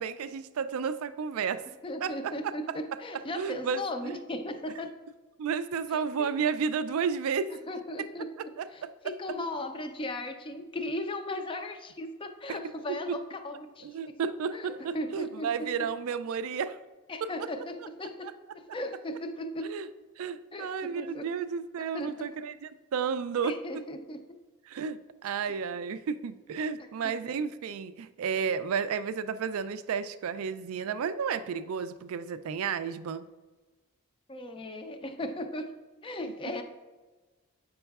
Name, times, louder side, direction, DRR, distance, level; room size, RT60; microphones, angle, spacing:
voice 1, 0.0-1.6 2.0-2.8 3.4-4.2 5.4-7.5 8.4-9.1 12.5-12.6 12.9-13.2 13.8-16.8 17.2-17.5 18.2-18.3 19.6-19.9 20.2-23.6 24.7-33.2, right 6 dB, 65° right, 13 dB, 0.3 m, -32 dB
voice 2, 1.8-4.9 5.9-6.3 7.7-8.3 8.7-14.2 14.5-15.7 17.1-18.3 18.5-19.7 20.5-21.3 21.9-22.3 23.4-24.2 27.0-27.2 34.3-35.7 36.0-36.6, left 1 dB, 25° left, 6 dB, 0.4 m, -37 dB
7.8 x 5.4 x 2.3 m, 1.2 s
head